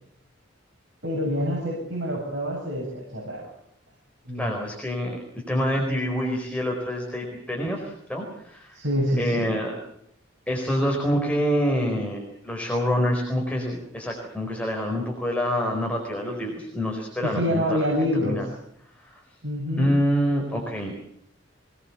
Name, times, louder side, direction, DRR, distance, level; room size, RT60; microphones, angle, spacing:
voice 1, 1.0-3.5 4.2-4.6 8.7-9.5 17.2-18.5 19.4-19.9, equal, 65° right, -2 dB, 7.9 m, -26 dB
voice 2, 4.3-5.2 5.5-8.8 9.2-9.7 10.5-17.9 18.2-18.5 19.0-19.2 19.8-20.9, equal, 5° left, 1 dB, 4.5 m, -26 dB
24.0 x 19.5 x 7.3 m, 0.72 s
head